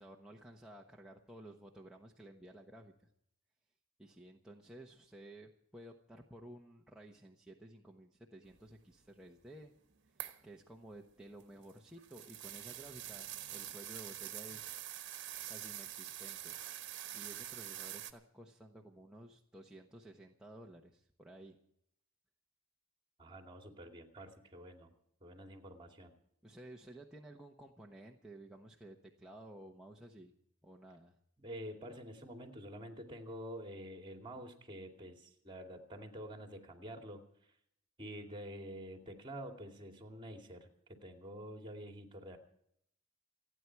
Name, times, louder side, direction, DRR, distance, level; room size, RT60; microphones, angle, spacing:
voice 1, 0.0-2.9 4.0-9.7 10.1-14.8 15.5-16.6 17.1-21.6 26.4-30.3 30.6-31.2, right 1 dB, 5° right, -2 dB, 1.1 m, -54 dB
sound 1, 10.2-10.5 11.4-18.1, right 12 dB, 55° right, 1.3 m, -45 dB
voice 2, 23.2-24.9 25.2-26.1 31.4-37.2 38.0-42.4, equal, 25° right, 4 dB, 2.5 m, -48 dB
29.0 x 9.9 x 4.7 m, 0.72 s
head